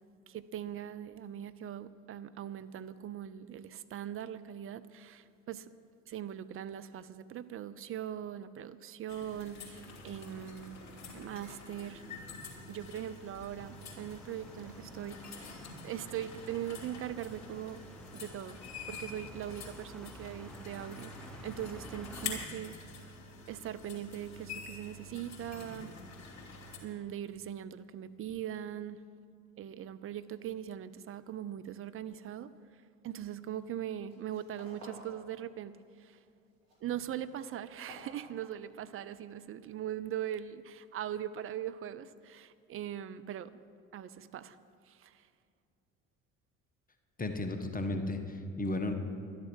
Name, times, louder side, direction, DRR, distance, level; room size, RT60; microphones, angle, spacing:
voice 1, 0.3-5.7 6.1-10.8 11.1-12.0 12.7-15.5 15.8-17.8 18.1-18.6 18.9-21.1 21.4-22.8 23.5-25.9 26.8-29.0 29.6-32.5 33.0-36.2 36.8-43.6 43.9-44.6 44.9-45.3, right 10 dB, 35° right, 12 dB, 0.6 m, -41 dB
sound 1, 9.1-26.8, left 4 dB, 40° left, 3.0 m, -47 dB
sound 2, 13.6-22.5, equal, ahead, 0.9 m, -52 dB
sound 3, 33.4-33.7 34.0-35.2 35.5-36.1 36.4-38.9, equal, 80° right, 3.9 m, -54 dB
voice 2, 47.2-48.9, left 2 dB, 20° left, 6 dB, 1.3 m, -34 dB
12.0 x 11.0 x 6.4 m, 2.4 s
figure-of-eight pair, 55°, 40 cm